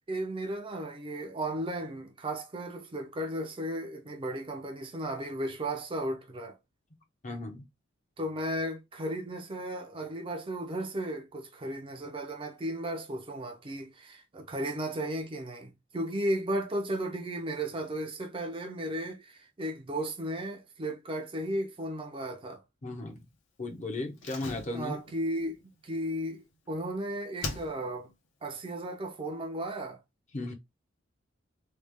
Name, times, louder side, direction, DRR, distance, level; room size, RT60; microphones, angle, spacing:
voice 1, 0.1-6.6 8.2-22.6 24.7-25.6 25.8-28.1 28.4-30.0, right 1 dB, 25° right, 0.6 m, -35 dB
voice 2, 7.2-7.6 22.8-23.2 23.6-25.0 30.3-30.5, left 2 dB, 40° left, 0.8 m, -36 dB
Slam, 24.2-26.9 27.4-28.1 28.4-28.5, left 3 dB, 65° left, 0.9 m, -41 dB
3.3 x 2.4 x 3.3 m
head